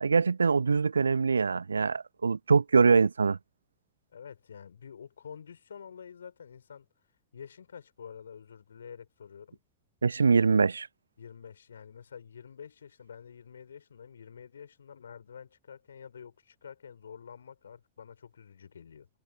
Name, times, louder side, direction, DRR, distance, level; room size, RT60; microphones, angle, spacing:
voice 1, 0.0-3.4 10.0-10.9, right 5 dB, 75° right, 1.1 m, -23 dB
voice 2, 4.1-6.9 7.3-9.6 11.2-19.1, left 7 dB, 70° left, 5.4 m, -48 dB
figure-of-eight pair, 90°, 0 cm